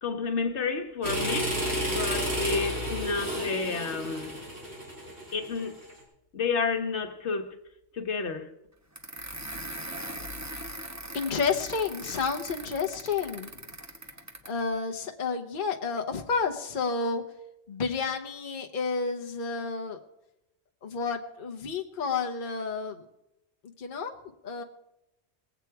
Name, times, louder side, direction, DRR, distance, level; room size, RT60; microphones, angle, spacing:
voice 1, 0.0-4.3 5.3-5.7 6.3-7.5 7.9-8.5, left 4 dB, 80° left, 1.5 m, -30 dB
sound 1, 1.0-5.9, equal, 70° right, 4.2 m, -31 dB
sound 2, 8.9-14.6, right 1 dB, 15° right, 0.9 m, -40 dB
voice 2, 11.1-13.5 14.5-17.2 17.7-20.0 20.8-23.0 23.8-24.1 24.4-24.6, left 5 dB, 50° left, 1.0 m, -30 dB
20.0 x 8.2 x 4.6 m
omnidirectional pair, 1.2 m